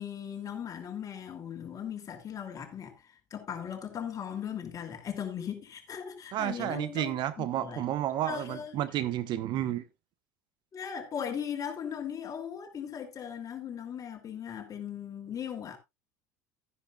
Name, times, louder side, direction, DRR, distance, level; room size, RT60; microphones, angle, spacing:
voice 1, 0.0-7.8 8.2-8.8 10.7-15.8, left 8 dB, 35° left, 2.9 m, -38 dB
voice 2, 6.3-9.8, right 12 dB, 50° right, 0.9 m, -31 dB
13.0 x 10.0 x 2.4 m
hypercardioid pair, 75°, 10 cm